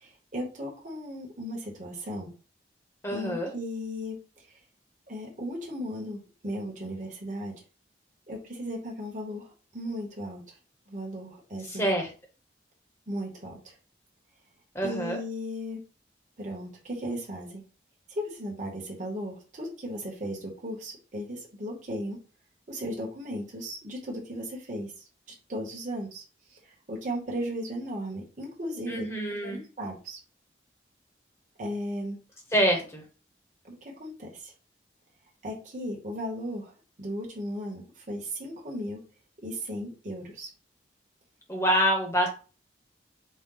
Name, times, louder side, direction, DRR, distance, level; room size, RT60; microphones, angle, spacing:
voice 1, 0.0-2.3 3.1-4.2 5.1-7.5 8.3-9.5 9.7-10.4 10.9-12.0 13.1-13.6 14.8-15.8 16.4-17.6 18.1-22.2 22.7-24.9 25.5-26.2 26.9-29.1 29.4-30.2 31.6-32.2 33.6-34.5 35.4-36.7 37.0-37.8 38.1-39.0 39.4-40.5, equal, 45° right, -2 dB, 1.1 m, -36 dB
voice 2, 3.0-3.5 11.6-12.1 14.7-15.2 28.9-29.6 32.5-33.0 41.5-42.3, equal, 15° left, 1 dB, 0.9 m, -26 dB
4.2 x 2.2 x 3.8 m, 0.35 s
head